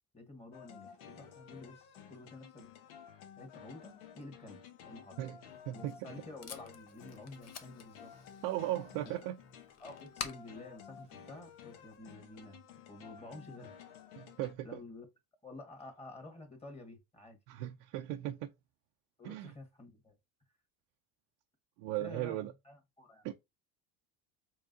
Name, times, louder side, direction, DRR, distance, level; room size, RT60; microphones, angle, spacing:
voice 1, 0.1-2.7 3.4-5.2 5.7-8.1 9.8-12.6 12.9-13.7 14.6-15.0 15.4-17.4 19.2-20.1 22.0-23.3, left 2 dB, 15° left, 1.7 m, -50 dB
sound 1, 0.5-14.5, left 8 dB, 75° left, 1.1 m, -54 dB
Packing tape duct tape, 5.5-12.0, left 7 dB, 40° left, 1.0 m, -50 dB
voice 2, 5.7-6.1 8.4-9.4 14.2-14.8 17.5-18.5 19.2-19.5 21.8-22.5 23.2-23.3, right 14 dB, 70° right, 0.6 m, -37 dB
4.7 x 3.4 x 2.7 m
supercardioid pair, 95°, 38 cm